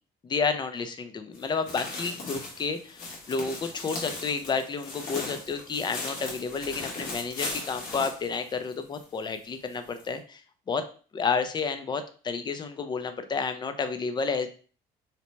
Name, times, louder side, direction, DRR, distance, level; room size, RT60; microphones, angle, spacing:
voice 1, 0.2-10.4 10.7-10.8 11.1-14.5, left 5 dB, 25° left, 9 dB, 0.4 m, -31 dB
kroky v listi prochazeni okolo - footsteps leaves passing by, 1.3-9.0 9.3-9.4 10.0-10.1, left 2 dB, 55° left, 1.0 m, -38 dB
2.7 x 2.0 x 3.1 m, 0.40 s
cardioid pair, 110°, 17 cm